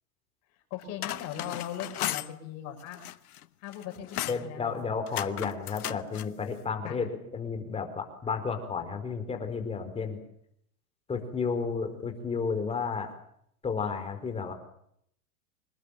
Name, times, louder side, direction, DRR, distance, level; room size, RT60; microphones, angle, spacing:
voice 1, 0.7-3.0 3.6-4.8 6.8-7.0, left 10 dB, 40° left, 4 dB, 6.6 m, -39 dB
sound 1, 0.8-2.3 2.8-3.4 3.7-4.5 5.1-6.3, left 14 dB, 85° left, 1.3 m, -35 dB
voice 2, 4.3-10.2 11.1-13.1 13.6-14.5, left 5 dB, 15° left, 6 dB, 4.7 m, -32 dB
26.5 x 21.0 x 7.5 m, 0.70 s
supercardioid pair, 145°, 43 cm